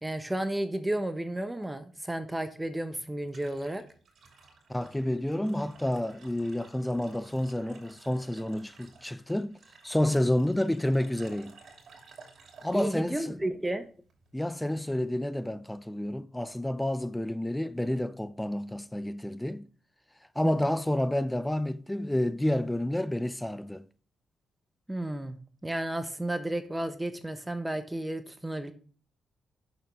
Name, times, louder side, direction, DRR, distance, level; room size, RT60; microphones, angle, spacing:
voice 1, 0.0-3.8 12.7-13.9 20.4-20.8 24.9-28.7, right 1 dB, 15° right, 1.2 m, -33 dB
sound 1, 2.6-14.4, right 4 dB, 60° right, 2.7 m, -55 dB
voice 2, 4.7-9.6 9.8-11.6 12.6-13.4 14.3-19.7 20.4-23.9, left 1 dB, 10° left, 0.5 m, -29 dB
11.0 x 6.4 x 3.5 m
hypercardioid pair, 45°, 0 cm